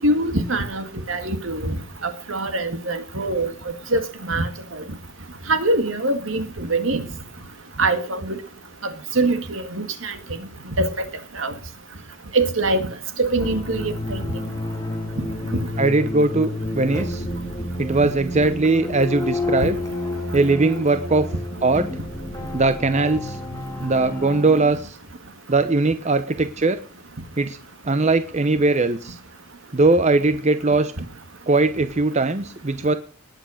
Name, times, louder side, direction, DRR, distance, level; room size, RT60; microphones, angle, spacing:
voice 1, 0.0-4.8 5.5-7.0 7.8-8.4 9.1-10.2 10.8-11.1 11.3-11.5 12.3-12.9 13.2-14.2 15.2-15.3 19.6-19.7, right 2 dB, 75° right, 9 dB, 2.1 m, -23 dB
sound 1, 13.4-24.7, left 2 dB, 15° left, 3.0 m, -30 dB
voice 2, 15.8-17.2 17.8-19.8 20.3-21.2 21.6-21.9 22.5-23.4 23.8-25.0 25.5-26.8 27.4-27.6 27.9-29.2 29.7-30.9 31.5-32.9, right 3 dB, 35° right, 11 dB, 0.8 m, -20 dB
19.5 x 8.1 x 6.4 m, 0.41 s
head